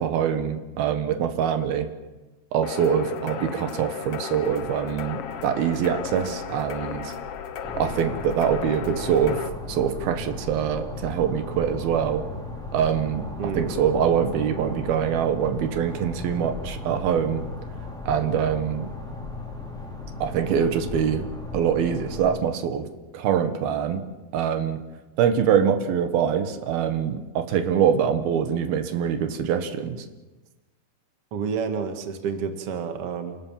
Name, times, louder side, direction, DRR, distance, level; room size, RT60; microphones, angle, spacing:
voice 1, 0.0-1.9 2.5-7.1 7.8-12.2 12.7-13.3 13.5-17.4 18.1-18.9 20.2-21.3 21.5-22.9 23.1-24.0 24.3-24.8 25.2-30.1, right 8 dB, 85° right, 7 dB, 3.3 m, -24 dB
sound 1, 2.6-9.5, left 8 dB, 65° left, 1.6 m, -35 dB
sound 2, 4.4-17.7, left 1 dB, 45° left, 1.7 m, -43 dB
sound 3, 7.6-22.4, left 2 dB, ahead, 3.4 m, -36 dB
voice 2, 31.3-33.4, right 6 dB, 45° right, 6 dB, 2.5 m, -29 dB
27.5 x 19.0 x 7.5 m, 1.2 s
omnidirectional pair, 4.2 m